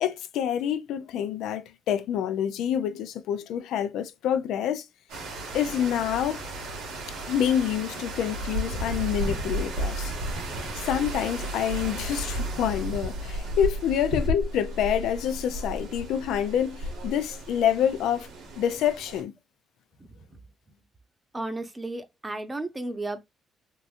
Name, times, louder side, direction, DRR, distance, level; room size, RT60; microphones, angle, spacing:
voice 1, 0.0-4.8 5.5-6.4 7.3-10.1 10.8-18.3 18.6-19.3, left 9 dB, 85° left, 0.5 m, -27 dB
sound 1, 5.1-19.2, right 1 dB, 90° right, 1.7 m, -33 dB
voice 2, 20.0-20.4 21.3-23.2, right 2 dB, 20° right, 0.8 m, -34 dB
3.6 x 2.9 x 2.5 m
cardioid pair, 90°, 0 cm